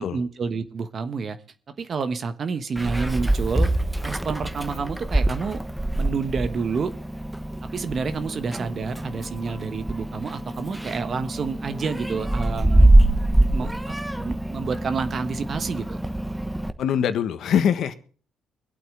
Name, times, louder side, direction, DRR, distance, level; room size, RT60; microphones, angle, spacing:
voice 1, 0.0-1.4 1.8-3.7 4.0-5.6 5.9-6.9 7.6-12.9 13.4-16.0, right 5 dB, 50° right, 1.3 m, -29 dB
Meow, 2.8-16.7, right 1 dB, 10° right, 1.2 m, -24 dB
voice 2, 16.8-17.9, left 8 dB, 70° left, 1.4 m, -23 dB
23.5 x 8.6 x 3.8 m
supercardioid pair, 55°, 0 cm